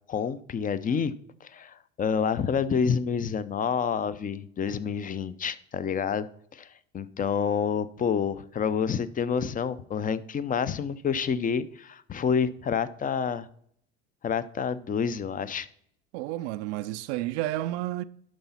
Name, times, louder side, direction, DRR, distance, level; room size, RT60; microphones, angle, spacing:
voice 1, 0.1-1.1 1.4-6.3 6.5-6.7 6.9-13.5 14.2-15.7, left 6 dB, 25° left, 0.5 m, -28 dB
voice 2, 16.1-18.0, right 15 dB, 80° right, 0.5 m, -31 dB
11.5 x 4.0 x 5.6 m
supercardioid pair, 95°, 32 cm